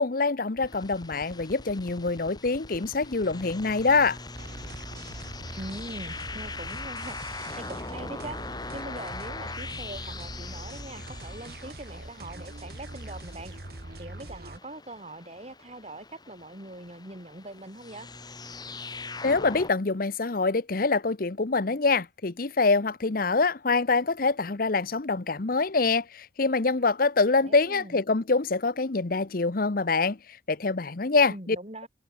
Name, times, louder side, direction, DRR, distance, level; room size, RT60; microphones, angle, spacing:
voice 1, 0.0-4.2 19.2-30.2 30.5-31.6, left 3 dB, 50° left, 0.9 m, -25 dB
sound 1, 0.6-19.7, left 3 dB, 25° left, 2.8 m, -41 dB
sound 2, 4.3-14.6, right 1 dB, 60° right, 2.1 m, -42 dB
voice 2, 5.6-13.6 14.0-18.1 27.3-28.0 31.3-31.9, right 1 dB, 35° right, 5.0 m, -42 dB
head